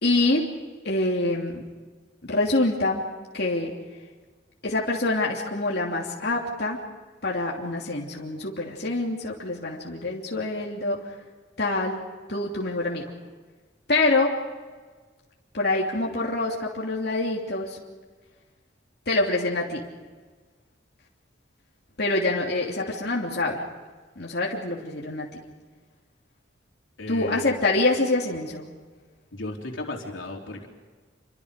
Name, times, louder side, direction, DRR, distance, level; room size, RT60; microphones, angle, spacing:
voice 1, 0.0-0.5 0.8-1.6 2.2-3.0 3.3-3.7 4.6-6.8 7.2-11.0 11.6-12.0 12.3-13.0 13.9-14.4 15.5-17.8 19.1-19.8 22.0-23.6 24.2-25.3 27.1-28.7, left 2 dB, 55° left, -2 dB, 3.1 m, -25 dB
voice 2, 27.0-27.6 29.3-30.7, left 2 dB, 90° left, 0 dB, 3.7 m, -35 dB
28.5 x 24.5 x 5.2 m, 1.4 s
head